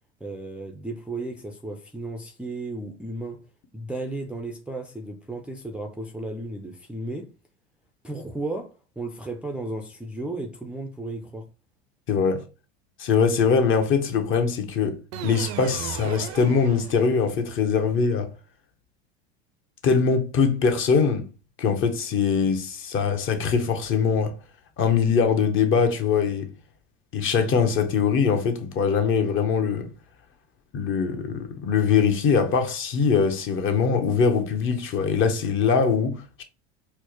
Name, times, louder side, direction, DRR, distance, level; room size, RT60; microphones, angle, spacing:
voice 1, 0.2-3.4 3.7-7.3 8.0-11.5, right 2 dB, 5° right, 0.4 m, -34 dB
voice 2, 12.1-12.5 13.0-18.3 19.8-21.3 21.6-24.4 24.8-26.5 27.1-29.9 30.7-36.4, left 6 dB, 40° left, 0.8 m, -22 dB
sound 1, 15.1-17.4, right 10 dB, 65° right, 0.5 m, -36 dB
4.5 x 2.1 x 3.0 m
hypercardioid pair, 95°, 32 cm